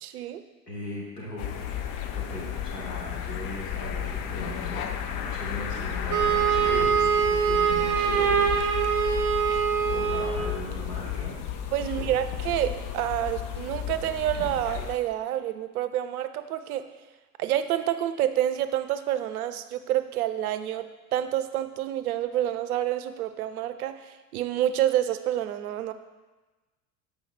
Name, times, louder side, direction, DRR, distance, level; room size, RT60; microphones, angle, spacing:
voice 1, 0.0-0.4 11.7-16.9 17.4-25.9, right 12 dB, 70° right, 11 dB, 0.6 m, -28 dB
voice 2, 0.7-1.5 2.1-8.6 9.9-11.4 11.8-12.1, left 1 dB, 90° left, -5 dB, 2.3 m, -38 dB
sound 1, 1.4-15.0, left 9 dB, 45° left, 0.7 m, -33 dB
Wind instrument woodwind instrument, 6.1-10.5, right 7 dB, 40° right, 1.0 m, -24 dB
7.2 x 5.0 x 4.3 m, 1.2 s
figure-of-eight pair, 75°, 46 cm